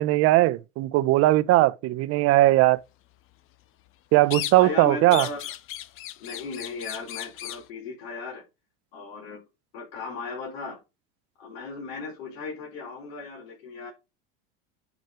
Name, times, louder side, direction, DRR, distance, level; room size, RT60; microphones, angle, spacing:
voice 1, 0.0-2.8 4.1-5.3, right 17 dB, 50° right, 0.9 m, -19 dB
sound 1, 4.3-4.8 5.1-7.7, left 13 dB, 45° left, 0.8 m, -36 dB
voice 2, 4.5-5.5 6.2-8.4 8.9-9.4 9.7-10.8 11.4-13.9, left 4 dB, 75° left, 5.4 m, -36 dB
9.6 x 5.4 x 4.5 m
supercardioid pair, 125°, 29 cm